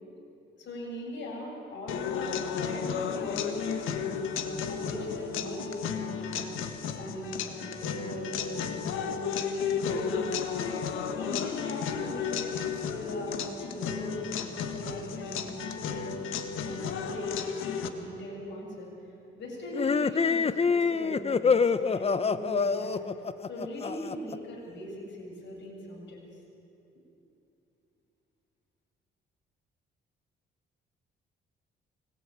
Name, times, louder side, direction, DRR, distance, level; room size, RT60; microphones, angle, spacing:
voice 1, 0.6-6.5 7.0-16.1 16.6-18.9 19.3-23.0 23.5-26.2, left 1 dB, 65° left, -2 dB, 7.5 m, -40 dB
sound 1, 1.9-17.9, left 7 dB, 85° left, 1.7 m, -33 dB
sound 2, 19.7-24.4, left 5 dB, 30° left, 0.8 m, -26 dB
24.5 x 19.5 x 9.2 m, 2.8 s
cardioid pair, 90°, 20 cm